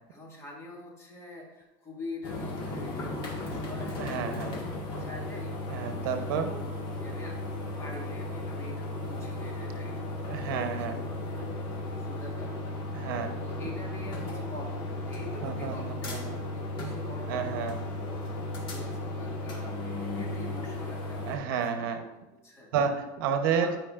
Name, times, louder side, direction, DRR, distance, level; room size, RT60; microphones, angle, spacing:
voice 1, 0.1-5.9 6.3-7.4 7.8-12.6 13.3-21.2 21.5-22.1 22.4-22.7 23.5-23.8, left 1 dB, 25° left, -1 dB, 1.9 m, -45 dB
sound 1, 2.2-21.4, left 1 dB, 45° left, 1.7 m, -35 dB
voice 2, 4.0-4.5 5.7-6.5 10.3-11.0 12.9-13.4 15.4-16.4 17.3-17.8 21.2-22.0 22.7-23.7, right 6 dB, 75° right, 7 dB, 0.9 m, -30 dB
11.5 x 5.1 x 2.5 m, 1.0 s
supercardioid pair, 125°, 11 cm